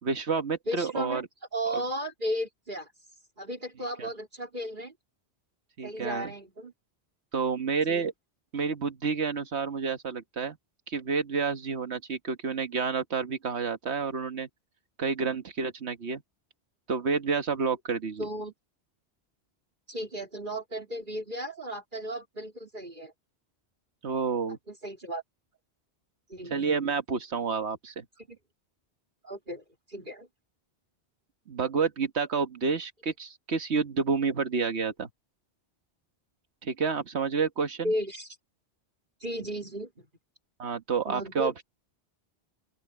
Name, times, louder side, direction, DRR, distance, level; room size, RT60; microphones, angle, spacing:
voice 1, 0.0-1.2 1.7-1.8 4.0-4.1 5.8-6.3 7.3-8.1 8.5-10.6 10.9-14.5 15.0-16.2 16.9-18.3 24.0-24.6 26.5-28.0 31.5-35.1 36.6-37.9 40.6-41.6, right 5 dB, 80° right, 1.7 m, -29 dB
voice 2, 0.7-1.2 1.5-2.9 3.4-4.9 5.8-6.7 7.9-8.1 18.2-18.5 19.9-23.1 24.7-25.2 26.3-26.8 28.3-28.4 29.2-30.3 37.8-38.3 39.2-40.1 41.1-41.6, equal, 50° right, 4.1 m, -35 dB
open air
omnidirectional pair, 1.1 m